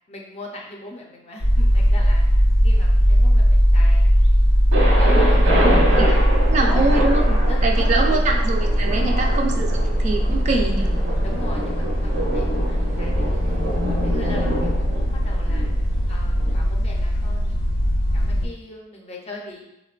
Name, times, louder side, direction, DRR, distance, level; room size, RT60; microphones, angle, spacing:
voice 1, 0.1-2.4 2.6-6.2 6.6-6.8 7.3-8.5 9.0-9.4 11.2-15.7 16.1-19.6, left 2 dB, 35° left, -1 dB, 0.5 m, -39 dB
sound 1, 1.4-18.5, equal, 85° left, 0.5 m, -19 dB
Thunder, 4.7-16.5, right 1 dB, 85° right, 1.0 m, -27 dB
voice 2, 6.5-10.9, right 3 dB, 40° right, 1 dB, 0.3 m, -24 dB
3.7 x 2.1 x 2.3 m, 0.88 s
head